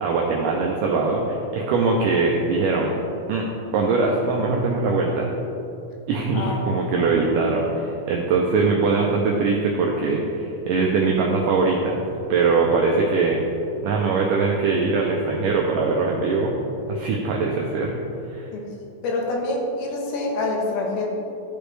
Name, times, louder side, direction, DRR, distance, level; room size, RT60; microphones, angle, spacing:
voice 1, 0.0-2.9 3.3-3.4 3.7-5.3 6.1-12.0 12.3-13.4 13.8-16.6 16.9-18.0 18.3-18.5, right 4 dB, 80° right, -1 dB, 2.0 m, -22 dB
voice 2, 19.0-21.1, left 2 dB, 90° left, -1 dB, 3.0 m, -26 dB
13.0 x 5.1 x 3.2 m, 2.8 s
omnidirectional pair, 4.3 m